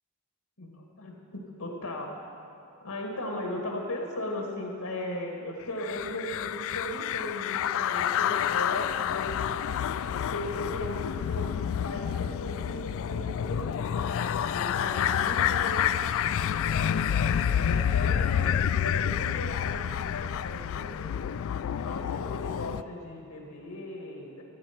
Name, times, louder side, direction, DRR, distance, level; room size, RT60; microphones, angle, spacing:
voice 1, 0.6-2.1 2.8-9.8 10.3-14.1 14.5-17.0 17.5-21.1 21.8-24.4, left 1 dB, 85° left, 0 dB, 1.8 m, -37 dB
sound 1, 5.8-22.8, left 9 dB, 65° left, 0.3 m, -29 dB
Wind instrument woodwind instrument, 13.9-18.5, equal, 20° right, 2.2 m, -48 dB
13.5 x 8.8 x 5.9 m, 2.6 s
head